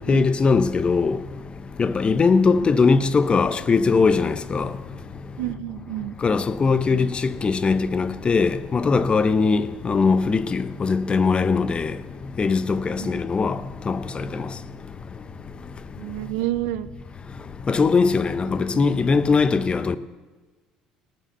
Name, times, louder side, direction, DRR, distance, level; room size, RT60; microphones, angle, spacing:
voice 1, 0.1-1.2 1.8-4.7 6.2-11.9 12.4-13.6 13.9-14.4 17.7-20.0, left 4 dB, 30° left, 0.9 m, -20 dB
voice 2, 5.4-6.1 13.0-13.2 16.0-16.9 18.7-18.8, right 15 dB, 70° right, 0.7 m, -29 dB
18.5 x 7.4 x 6.8 m
hypercardioid pair, 60°, 3 cm